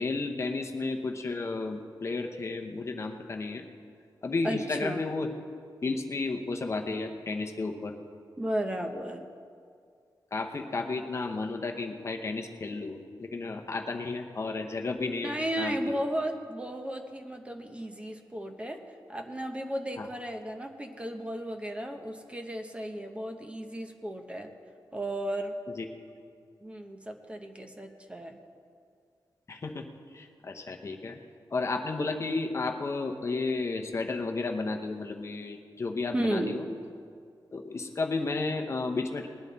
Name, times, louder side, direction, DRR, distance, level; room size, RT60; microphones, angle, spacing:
voice 1, 0.0-3.7 4.2-5.3 5.8-8.0 10.3-16.0 20.0-20.1 25.7-25.9 29.5-29.9 30.1-31.2 31.5-36.6 37.5-39.3, left 3 dB, 35° left, 4 dB, 0.8 m, -32 dB
voice 2, 4.4-5.0 8.4-9.2 15.2-18.8 19.1-24.5 24.9-25.6 26.6-28.4 36.1-36.6, right 1 dB, 15° right, 4 dB, 0.8 m, -34 dB
19.5 x 10.5 x 4.0 m, 2.2 s
wide cardioid pair, 155°, 8 cm